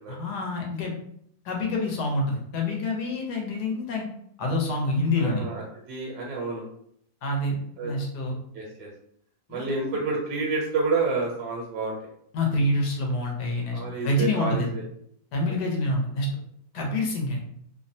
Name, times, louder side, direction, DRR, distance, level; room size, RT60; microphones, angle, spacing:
voice 1, 0.1-0.9 1.4-4.0 4.4-5.4 7.2-7.6 7.8-8.3 9.5-10.0 12.3-14.7 15.3-16.3 16.7-17.4, left 2 dB, 90° left, 0 dB, 1.3 m, -27 dB
voice 2, 5.2-6.6 7.8-7.9 8.5-8.9 9.5-12.0 13.7-14.8 15.5-15.6 16.8-16.9, right 3 dB, 75° right, -2 dB, 1.1 m, -29 dB
3.0 x 2.1 x 2.6 m, 0.69 s
omnidirectional pair, 1.7 m